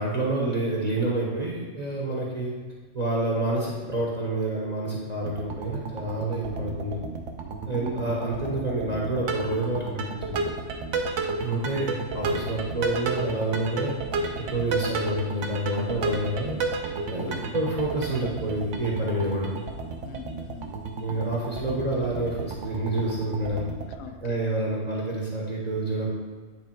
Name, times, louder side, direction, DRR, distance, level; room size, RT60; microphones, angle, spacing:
voice 1, 0.0-2.5 2.9-7.0 7.7-10.4 11.4-13.9 14.5-16.6 17.1-19.5 21.0-23.7 24.2-26.2, right 2 dB, 35° right, -4 dB, 0.9 m, -28 dB
sound 1, 5.2-24.0, right 3 dB, 65° right, 1.0 m, -32 dB
voice 2, 7.7-8.2 17.2-17.6 20.0-20.7 23.9-24.4, left 7 dB, 60° left, 7 dB, 0.8 m, -43 dB
9.2 x 3.3 x 4.4 m, 1.4 s
omnidirectional pair, 1.4 m